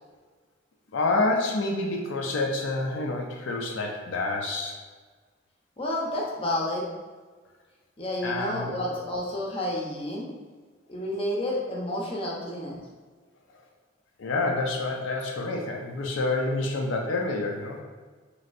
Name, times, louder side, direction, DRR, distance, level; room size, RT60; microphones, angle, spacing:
voice 1, 0.9-4.8 8.2-8.7 14.2-17.8, left 2 dB, 80° left, 1 dB, 0.4 m, -28 dB
voice 2, 5.8-6.8 8.0-10.3 10.9-12.8, left 1 dB, 30° left, -3 dB, 0.6 m, -30 dB
3.1 x 2.6 x 2.5 m, 1.4 s
head